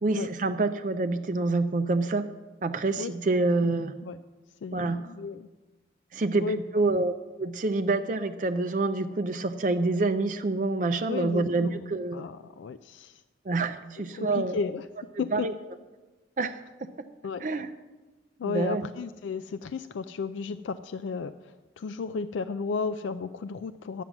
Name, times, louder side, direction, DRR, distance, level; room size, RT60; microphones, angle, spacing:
voice 1, 0.0-2.3 2.6-3.9 4.7-5.0 6.1-7.1 7.4-12.2 13.5-14.6 15.3-15.5 16.4-16.6 17.0-17.1 17.4-17.7 18.4-18.8, right 3 dB, 40° right, 8 dB, 0.4 m, -27 dB
voice 2, 3.0-3.4 3.6-3.7 4.0-4.2 4.6-5.5 6.4-7.0 11.1-13.2 14.1-14.9 15.2-15.5 17.2-17.4 18.4-24.0, left 4 dB, 80° left, 12 dB, 0.4 m, -34 dB
12.0 x 9.1 x 6.0 m, 1.2 s
head